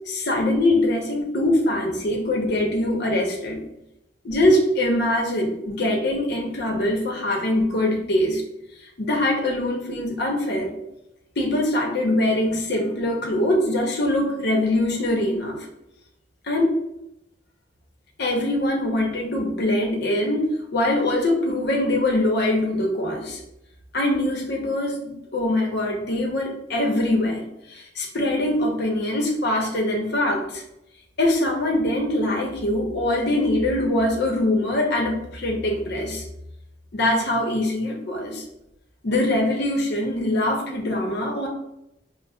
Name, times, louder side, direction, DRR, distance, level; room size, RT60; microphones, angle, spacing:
voice 1, 0.1-3.7 4.2-8.4 9.0-10.7 11.4-15.7 16.4-16.8 18.2-23.4 23.9-30.6 31.2-36.2 36.9-38.4 39.0-41.5, left 1 dB, 65° left, 0 dB, 0.8 m, -23 dB
5.7 x 2.0 x 2.2 m, 0.84 s
head